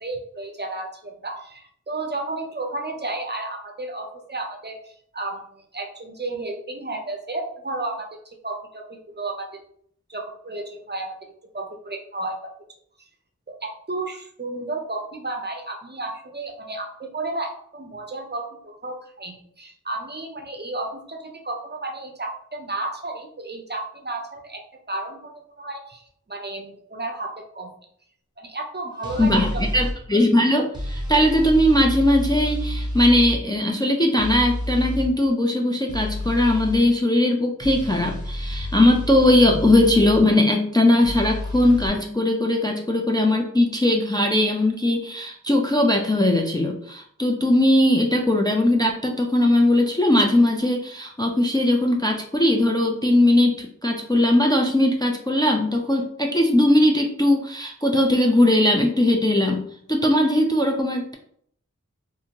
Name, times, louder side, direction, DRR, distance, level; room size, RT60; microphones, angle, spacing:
voice 1, 0.0-9.5 10.1-11.2 11.5-12.5 13.5-24.6 24.9-27.7 28.4-29.6, right 2 dB, 35° right, 2 dB, 0.5 m, -32 dB
sound 1, 29.0-29.9 30.7-33.4 34.2-35.1 35.9-36.8 37.6-40.2 41.0-41.9, left 1 dB, 15° right, 0.9 m, -29 dB
voice 2, 29.2-59.6 59.9-61.1, left 1 dB, 15° left, 1 dB, 0.3 m, -19 dB
2.6 x 2.5 x 2.8 m, 0.64 s
wide cardioid pair, 40°, 31 cm